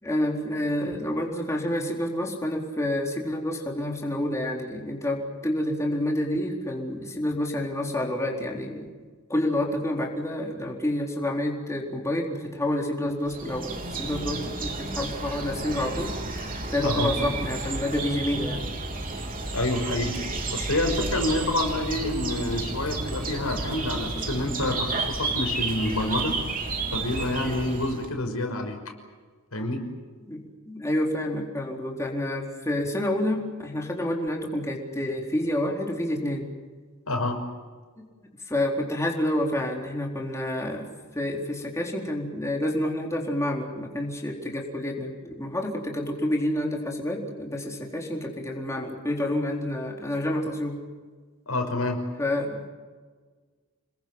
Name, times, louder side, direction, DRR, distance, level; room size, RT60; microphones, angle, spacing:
voice 1, 0.0-8.9 9.3-16.1 16.7-18.6 30.3-36.5 38.0-38.1 38.5-40.9 41.1-50.8 52.2-52.7, left 1 dB, 15° left, -1 dB, 4.1 m, -28 dB
sound 1, 13.3-28.1, right 3 dB, 40° right, 3.6 m, -31 dB
voice 2, 19.5-20.2 20.5-26.3 26.9-28.8 29.5-29.8 37.1-37.4 51.5-52.0, left 2 dB, 85° left, 4 dB, 5.8 m, -27 dB
29.0 x 21.0 x 7.9 m, 1.5 s
head